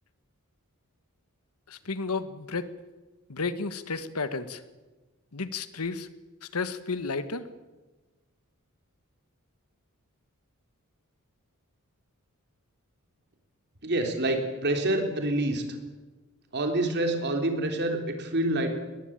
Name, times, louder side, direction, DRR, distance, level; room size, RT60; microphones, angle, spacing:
voice 1, 1.7-2.7 3.3-4.6 5.3-6.1 6.5-7.4, left 4 dB, 80° left, 13 dB, 1.4 m, -32 dB
voice 2, 13.8-15.7 16.5-18.7, right 1 dB, 50° right, 4 dB, 3.7 m, -27 dB
21.5 x 20.5 x 8.8 m, 1.2 s
head